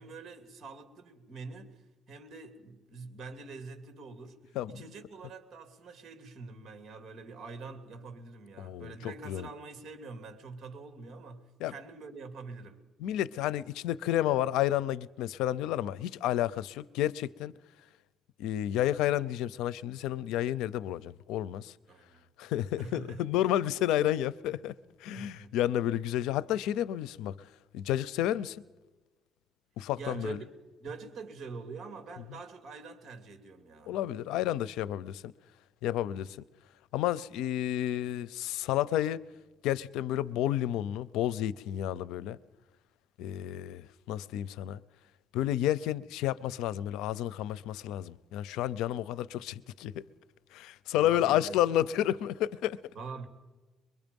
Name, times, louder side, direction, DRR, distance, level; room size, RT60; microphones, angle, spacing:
voice 1, 0.0-12.8 21.9-22.2 22.8-23.3 25.1-25.5 29.9-30.5 30.8-34.0 50.9-51.7 52.9-53.3, right 4 dB, 50° right, 2.7 m, -45 dB
voice 2, 8.6-9.5 11.6-11.7 13.0-17.5 18.4-21.7 22.4-24.7 25.0-27.3 27.7-28.6 29.8-30.4 33.9-35.3 35.8-36.4 36.9-39.2 39.6-42.4 43.2-44.8 45.3-50.0 50.5-52.8, left 12 dB, 90° left, 0.6 m, -31 dB
24.0 x 22.0 x 5.3 m
cardioid pair, 135°, 0 cm